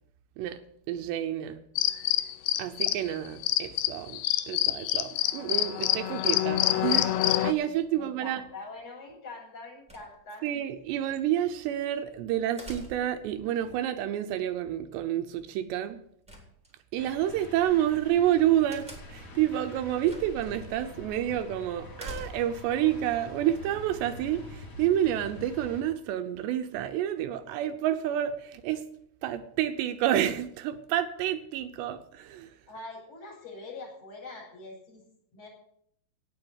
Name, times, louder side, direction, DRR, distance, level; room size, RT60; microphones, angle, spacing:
voice 1, 0.9-1.6 2.6-4.2 4.5-8.4 10.4-16.0 16.9-28.8 29.2-32.5, right 11 dB, 80° right, 8 dB, 2.9 m, -29 dB
sound 1, 1.8-3.1 3.4-7.5, left 14 dB, 80° left, 2.5 m, -26 dB
voice 2, 7.9-10.5 32.7-35.0 35.3-35.5, left 3 dB, 35° left, -5 dB, 7.3 m, -44 dB
sound 2, 9.9-10.5 12.6-13.3 16.3-17.0 18.7-19.3 20.0-20.5 20.8-20.9 22.0-22.7, right 1 dB, ahead, 2.1 m, -44 dB
sound 3, 17.0-25.8, left 1 dB, 55° left, 1.1 m, -45 dB
17.5 x 6.2 x 8.0 m, 0.71 s
omnidirectional pair, 5.0 m